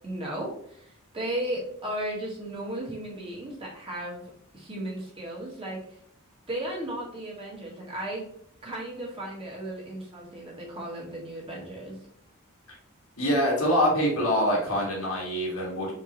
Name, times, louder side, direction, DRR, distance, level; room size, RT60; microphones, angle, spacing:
voice 1, 0.0-4.2 4.5-5.8 6.5-8.2 8.6-12.0, right 1 dB, 25° right, -4 dB, 1.5 m, -35 dB
voice 2, 13.2-15.9, equal, 90° left, -3 dB, 1.9 m, -25 dB
4.5 x 3.7 x 3.0 m, 0.66 s
head